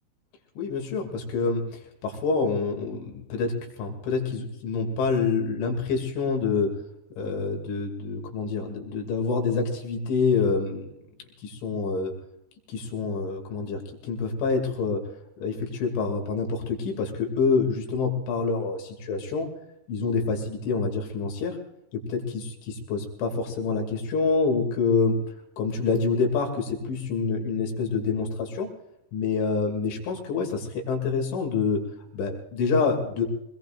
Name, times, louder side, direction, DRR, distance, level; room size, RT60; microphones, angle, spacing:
voice 1, 0.6-1.6 2.0-6.7 7.2-10.9 11.4-12.1 12.7-15.0 15.4-19.5 19.9-21.6 21.9-25.2 25.6-28.7 29.1-31.8 32.1-33.3, left 4 dB, 90° left, 2 dB, 5.2 m, -27 dB
24.5 x 21.0 x 2.6 m, 0.85 s
omnidirectional pair, 5.3 m